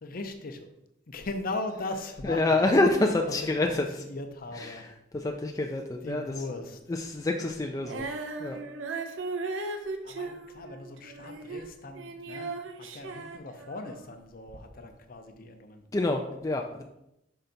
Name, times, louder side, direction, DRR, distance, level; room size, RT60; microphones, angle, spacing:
voice 1, 0.0-0.7 1.1-2.7 3.3-3.7 4.1-4.8 6.0-6.8 10.0-15.8, left 2 dB, 50° left, 7 dB, 0.7 m, -38 dB
voice 2, 2.2-3.9 4.5-6.2 6.9-8.1 8.4-8.6 15.9-16.8, left 2 dB, 15° left, 2 dB, 0.3 m, -27 dB
Female singing, 7.8-14.1, right 3 dB, 80° right, 0.6 m, -37 dB
5.6 x 4.5 x 3.9 m, 0.85 s
head